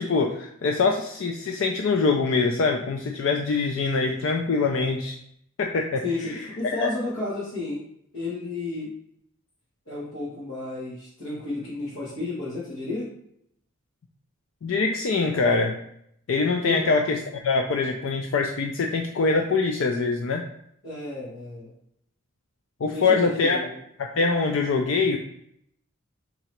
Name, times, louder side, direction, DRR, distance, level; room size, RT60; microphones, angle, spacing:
voice 1, 0.0-5.2 5.6-6.9 14.6-15.7 16.3-20.4 22.8-23.6 24.1-25.2, left 4 dB, 60° left, 2 dB, 0.4 m, -24 dB
voice 2, 6.0-7.8 8.1-8.9 9.9-13.1 16.6-16.8 20.8-21.7 22.9-23.8, left 3 dB, 80° left, -8 dB, 1.5 m, -32 dB
3.7 x 2.9 x 4.4 m, 0.72 s
head